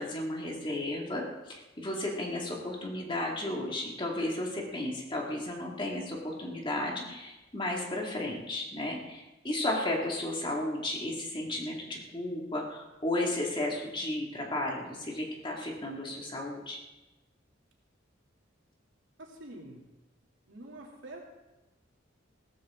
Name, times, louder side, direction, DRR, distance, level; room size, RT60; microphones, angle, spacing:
voice 1, 0.0-16.8, left 1 dB, 25° left, -1 dB, 2.3 m, -34 dB
voice 2, 19.2-19.8 20.5-21.2, right 1 dB, 85° right, -1 dB, 2.9 m, -46 dB
16.5 x 14.0 x 3.8 m, 1.0 s
head